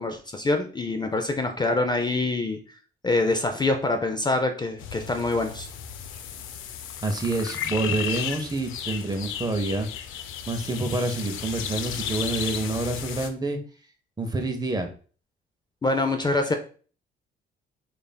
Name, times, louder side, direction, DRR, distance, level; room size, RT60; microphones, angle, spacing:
voice 1, 0.0-2.6 3.0-5.7 15.8-16.5, left 2 dB, 20° left, 6 dB, 0.4 m, -25 dB
sound 1, 4.8-13.3, left 9 dB, 90° left, 0.4 m, -34 dB
voice 2, 7.0-9.9 10.5-13.6 14.2-14.9, right 2 dB, 20° right, 5 dB, 0.6 m, -27 dB
5.2 x 2.5 x 2.2 m, 0.41 s
cardioid pair, 90°, 20 cm